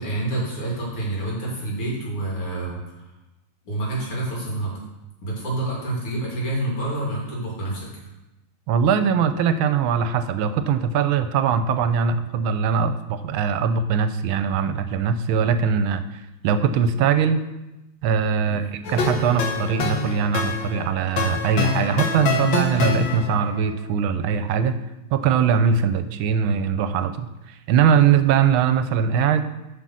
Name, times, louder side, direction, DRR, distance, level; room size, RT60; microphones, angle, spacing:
voice 1, 0.0-2.8 3.7-4.7 5.2-7.9 18.4-18.7, right 2 dB, 90° left, -4 dB, 3.7 m, -27 dB
voice 2, 8.7-17.4 18.0-18.6 18.9-24.8 25.1-29.4, right 7 dB, 75° right, 11 dB, 1.4 m, -21 dB
sound 1, 18.8-23.5, left 4 dB, 65° left, 1.6 m, -25 dB
7.9 x 5.8 x 6.2 m, 0.97 s
omnidirectional pair, 2.3 m